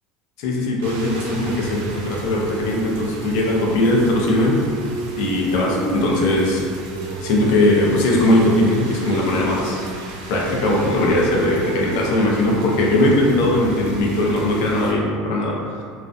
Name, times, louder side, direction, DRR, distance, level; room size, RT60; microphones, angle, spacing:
voice 1, 0.4-4.6 5.2-6.7 7.2-9.9 10.3-15.6, left 1 dB, 65° left, -2 dB, 0.5 m, -19 dB
Rain, 0.8-14.9, right 3 dB, 80° right, 0.4 m, -32 dB
2.4 x 2.1 x 2.5 m, 2.3 s
supercardioid pair, 155°, 0 cm